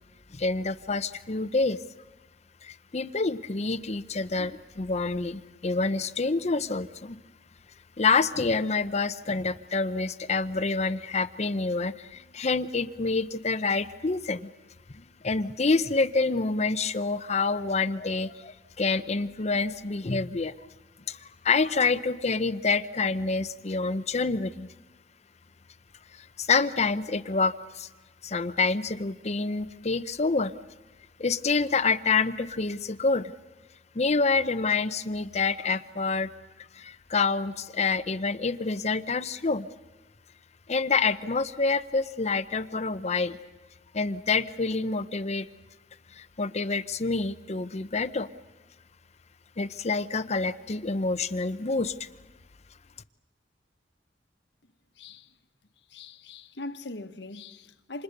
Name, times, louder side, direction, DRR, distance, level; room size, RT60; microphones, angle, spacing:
voice 1, 0.3-1.8 2.6-7.2 8.0-14.5 14.9-20.5 21.1-24.7 26.1-27.9 28.2-30.5 31.2-33.3 33.9-36.3 36.7-39.7 40.7-43.4 43.9-45.5 46.1-48.3 49.6-52.1, left 4 dB, 40° left, 0.8 m, -27 dB
voice 2, 55.0-55.3 55.9-58.0, left 2 dB, 75° left, 1.3 m, -41 dB
29.0 x 27.0 x 6.7 m
head